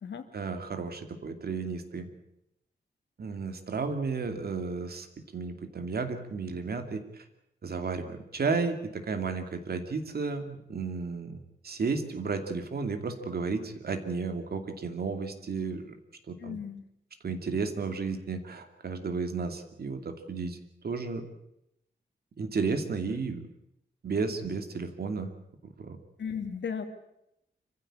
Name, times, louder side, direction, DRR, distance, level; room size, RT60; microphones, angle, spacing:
voice 1, 0.3-2.1 3.2-5.1 5.3-7.2 7.6-16.0 16.3-16.6 17.2-20.6 20.8-21.2 22.4-23.4 24.0-25.3 25.8-26.0, right 4 dB, 55° right, 7 dB, 2.6 m, -33 dB
voice 2, 16.4-16.8 26.2-26.8, left 6 dB, 75° left, 7 dB, 2.5 m, -35 dB
26.5 x 15.0 x 8.8 m, 0.83 s
wide cardioid pair, 160°, 19 cm